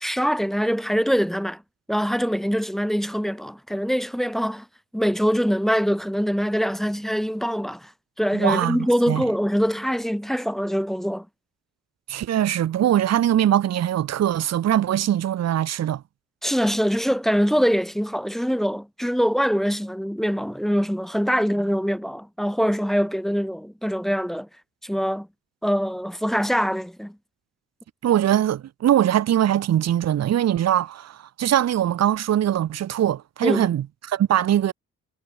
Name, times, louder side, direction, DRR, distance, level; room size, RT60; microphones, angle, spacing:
voice 1, 0.0-1.6 1.9-4.6 4.9-7.9 8.2-11.3 16.4-24.5 24.8-25.3 25.6-27.2 33.4-33.7, equal, ahead, 0.7 m, -23 dB
voice 2, 8.3-9.2 12.1-16.0 28.0-34.7, right 11 dB, 60° right, 1.2 m, -22 dB
cardioid pair, 90°, 30 cm